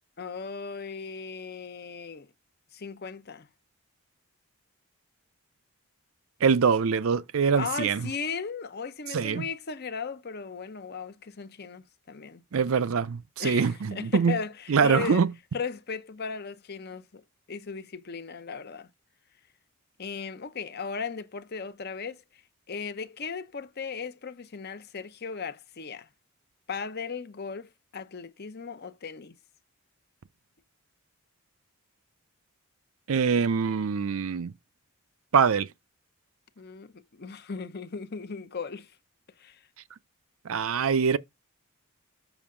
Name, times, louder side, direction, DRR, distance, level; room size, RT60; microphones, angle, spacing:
voice 1, 0.2-2.3 2.7-3.5 7.6-12.4 13.4-15.3 15.5-17.2 17.5-18.9 20.0-22.2 22.7-26.1 26.7-29.3 36.6-38.9 39.4-39.6, left 5 dB, 45° left, 0.7 m, -37 dB
voice 2, 6.4-8.1 9.1-9.4 12.5-14.4 14.7-15.3 33.1-34.5 35.3-35.7 40.5-41.2, right 6 dB, 70° right, 0.5 m, -24 dB
7.1 x 5.3 x 3.7 m
head